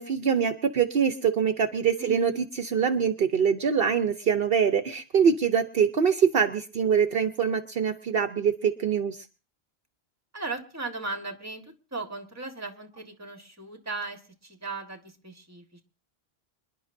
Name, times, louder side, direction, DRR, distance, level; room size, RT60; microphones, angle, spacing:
voice 1, 0.0-9.2, right 7 dB, 60° right, 8 dB, 1.0 m, -24 dB
voice 2, 2.0-2.4 10.3-11.6 11.9-15.8, right 3 dB, 15° right, 5 dB, 1.6 m, -37 dB
26.5 x 11.0 x 2.7 m, 0.36 s
omnidirectional pair, 1.1 m